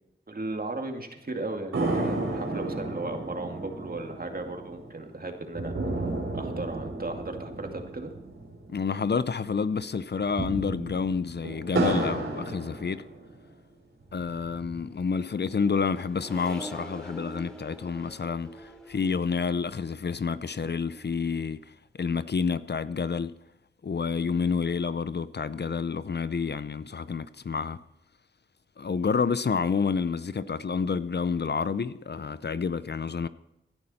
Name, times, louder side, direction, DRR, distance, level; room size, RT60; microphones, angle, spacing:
voice 1, 0.3-5.7 6.3-8.1, right 2 dB, 45° right, 2.4 m, -36 dB
sound 1, 1.7-9.3 9.6-9.7 10.1-13.5 14.0-15.0, right 2 dB, 85° right, 4.0 m, -33 dB
voice 2, 8.7-13.1 14.1-23.3 23.8-27.8 28.8-33.3, left 5 dB, 55° left, 0.6 m, -29 dB
Accelerating revving vroom, 14.8-21.5, right 1 dB, 5° left, 3.0 m, -46 dB
17.5 x 11.5 x 4.2 m
cardioid pair, 55°, 21 cm